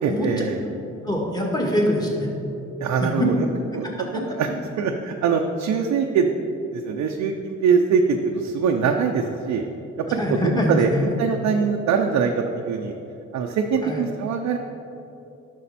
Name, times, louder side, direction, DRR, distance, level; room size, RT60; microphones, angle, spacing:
voice 1, 0.0-0.6 2.8-3.5 3.7-3.9 4.1-4.5 4.8-6.3 6.7-9.6 10.0-12.9 13.3-14.6, right 6 dB, 70° right, 2 dB, 0.6 m, -23 dB
voice 2, 1.0-2.3 10.2-11.0 13.8-14.0, left 1 dB, 15° left, -1 dB, 1.8 m, -23 dB
11.0 x 6.4 x 4.2 m, 2.8 s
cardioid pair, 90°, 30 cm